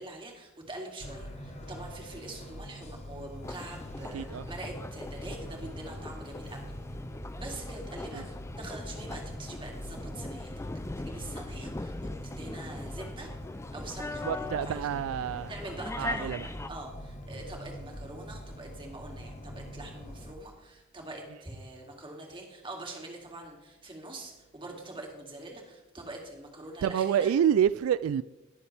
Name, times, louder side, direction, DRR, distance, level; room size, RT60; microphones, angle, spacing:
voice 1, 0.0-6.7 7.4-10.6 11.1-13.3 13.7-14.9 15.5-16.3 16.7-27.3, right 2 dB, 25° right, 2.5 m, -44 dB
sound 1, 1.0-20.3, equal, 35° left, 1.3 m, -44 dB
sound 2, 3.4-16.7, left 2 dB, 15° left, 0.4 m, -40 dB
voice 2, 4.1-4.5 14.2-15.5 16.0-16.5 26.8-28.2, right 9 dB, 85° right, 0.3 m, -27 dB
21.0 x 7.0 x 3.4 m
head